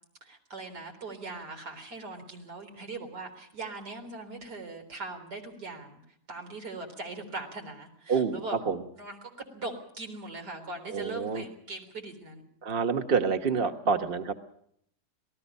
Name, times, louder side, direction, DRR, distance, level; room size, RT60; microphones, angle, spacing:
voice 1, 0.2-8.6 9.0-12.4, right 3 dB, 90° right, 4 dB, 4.4 m, -40 dB
voice 2, 8.1-8.8 10.9-11.4 12.6-14.3, right 5 dB, 35° right, 6 dB, 1.4 m, -27 dB
27.5 x 19.0 x 5.4 m, 0.69 s
omnidirectional pair, 1.7 m